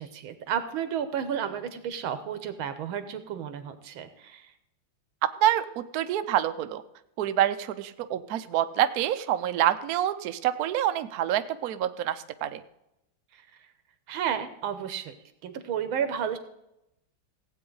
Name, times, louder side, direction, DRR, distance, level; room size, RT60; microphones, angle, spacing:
voice 1, 0.0-4.5 13.3-13.4 14.1-15.1 15.4-16.4, right 8 dB, 85° right, 11 dB, 1.8 m, -32 dB
voice 2, 5.4-6.8 7.2-12.6, right 12 dB, 65° right, 10 dB, 0.9 m, -27 dB
16.5 x 8.5 x 3.9 m, 0.85 s
omnidirectional pair, 2.2 m